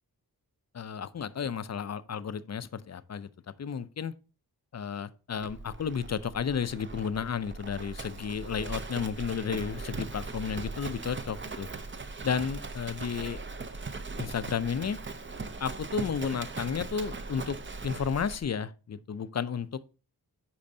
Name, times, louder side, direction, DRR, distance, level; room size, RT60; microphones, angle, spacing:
voice 1, 0.7-3.3 3.6-4.1 4.7-11.7 12.2-13.4 14.2-15.0 15.6-17.6 17.8-19.8, left 7 dB, 45° left, 0.5 m, -32 dB
Livestock farm animals working animals, 5.4-18.4, right 3 dB, 30° right, 0.6 m, -39 dB
8.6 x 5.1 x 2.7 m
wide cardioid pair, 65°, 40 cm